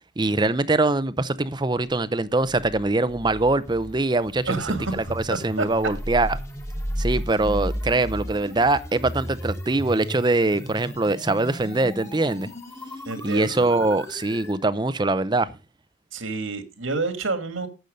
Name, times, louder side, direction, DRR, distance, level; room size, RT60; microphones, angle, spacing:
voice 1, 0.2-6.4 7.0-12.5 13.2-15.5, right 2 dB, 20° right, 0.6 m, -23 dB
sound 1, 2.4-14.6, equal, 15° left, 1.5 m, -34 dB
voice 2, 4.5-5.7 13.1-13.7 16.1-17.7, right 3 dB, 80° right, 2.2 m, -29 dB
12.0 x 8.2 x 5.2 m
head